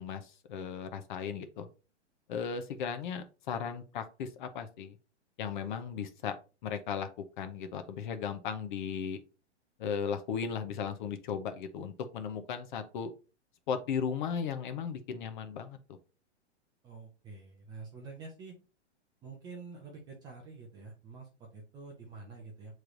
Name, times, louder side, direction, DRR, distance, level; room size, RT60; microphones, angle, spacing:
voice 1, 0.0-1.7 2.3-5.0 5.4-6.4 6.6-7.1 7.4-9.2 9.8-13.1 13.7-15.8, left 7 dB, 45° left, 9 dB, 0.6 m, -36 dB
voice 2, 16.8-18.6 19.2-22.8, right 4 dB, 10° right, 0 dB, 0.4 m, -47 dB
6.6 x 3.2 x 2.5 m, 0.32 s
hypercardioid pair, 150°, 35 cm